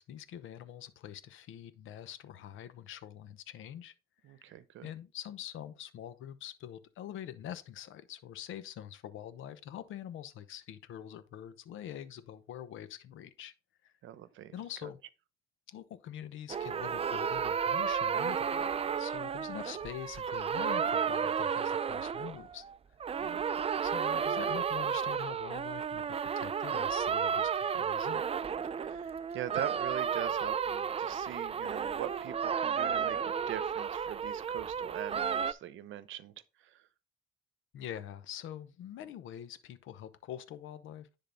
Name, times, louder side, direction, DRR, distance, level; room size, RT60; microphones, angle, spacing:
voice 1, 0.0-3.9 4.3-13.5 13.8-13.9 14.5-15.0 15.7-22.6 23.2-28.2 37.7-41.2, left 10 dB, 85° left, 0.9 m, -45 dB
voice 2, 4.2-4.9 14.0-14.5 14.8-14.9 23.2-23.4 28.8-36.3 36.6-36.8, right 11 dB, 80° right, 0.8 m, -42 dB
sound 1, 16.5-22.7 23.0-35.5, right 7 dB, 30° right, 0.4 m, -32 dB
10.5 x 3.9 x 3.9 m
cardioid pair, 90°, 20 cm